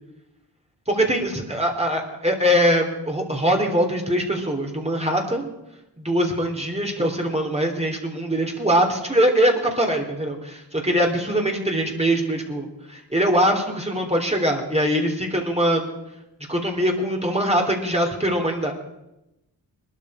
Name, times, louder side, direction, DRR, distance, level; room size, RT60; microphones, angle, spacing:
voice 1, 0.9-5.5 6.0-15.9 16.5-18.7, equal, 15° right, 1 dB, 3.3 m, -22 dB
20.0 x 12.5 x 4.9 m, 0.91 s
cardioid pair, 55°, 43 cm